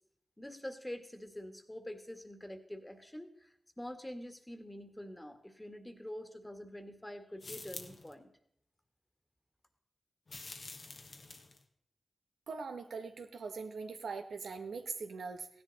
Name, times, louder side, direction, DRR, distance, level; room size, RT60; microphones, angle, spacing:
voice 1, 0.4-3.5 3.8-8.3, left 1 dB, 15° left, 8 dB, 1.7 m, -46 dB
sound 1, 7.4-8.1 10.3-11.6, left 3 dB, 65° left, 1.2 m, -47 dB
voice 2, 12.5-15.5, right 4 dB, 90° right, 7 dB, 1.0 m, -41 dB
15.5 x 10.5 x 4.0 m, 0.71 s
cardioid pair, 45°, 0 cm